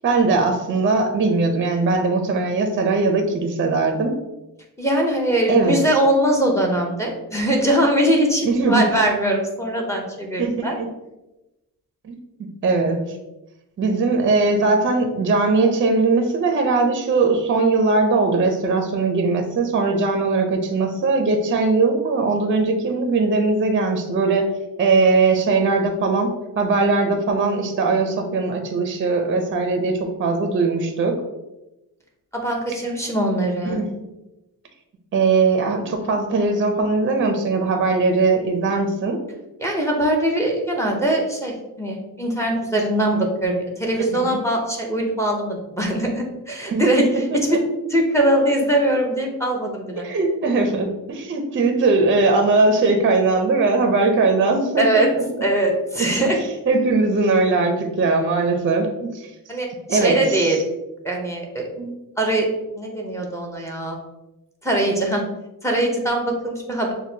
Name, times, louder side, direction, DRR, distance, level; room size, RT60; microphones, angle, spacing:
voice 1, 0.0-4.1 5.5-5.8 8.4-8.8 10.4-10.9 12.1-12.2 12.6-13.0 13.8-24.5 24.8-26.3 26.6-31.2 33.7-33.9 35.1-39.2 44.1-44.4 46.6-47.6 50.0-55.2 56.0-56.3 56.7-59.3 59.9-60.6 61.8-61.9, right 3 dB, 35° right, 4 dB, 0.5 m, -20 dB
voice 2, 4.8-10.7 32.3-33.8 39.6-47.1 47.3-47.6 47.9-50.1 54.8-55.1 55.4-56.4 59.5-60.6 61.0-61.6 62.2-62.5 62.8-64.0 64.6-65.2 65.6-66.9, right 1 dB, 10° left, 0 dB, 0.6 m, -21 dB
6.2 x 2.2 x 2.7 m, 0.97 s
wide cardioid pair, 130°, 37 cm